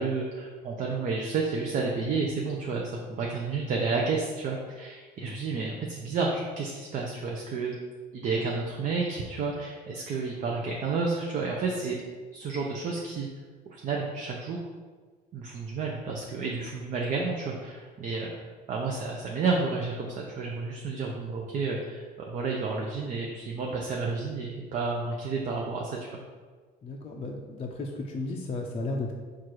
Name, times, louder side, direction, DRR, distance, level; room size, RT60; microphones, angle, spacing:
voice 1, 0.0-7.7 8.1-12.0 12.3-13.3 13.7-14.6 15.3-26.2, right 4 dB, 50° right, -1 dB, 0.6 m, -31 dB
voice 2, 26.8-29.1, left 2 dB, 35° left, 0 dB, 0.5 m, -34 dB
4.6 x 2.4 x 4.5 m, 1.4 s
cardioid pair, 110°, 17 cm